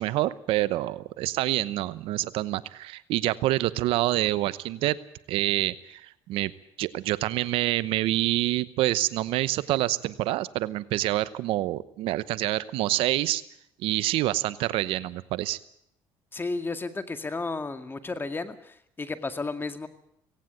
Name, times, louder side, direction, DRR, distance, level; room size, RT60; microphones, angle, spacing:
voice 1, 0.0-5.0 5.3-6.5 6.8-13.4 13.8-15.6, right 16 dB, 80° right, 16 dB, 0.9 m, -27 dB
voice 2, 16.3-19.9, left 3 dB, 25° left, 9 dB, 2.1 m, -33 dB
18.0 x 17.5 x 9.1 m, 0.72 s
supercardioid pair, 90°, 9 cm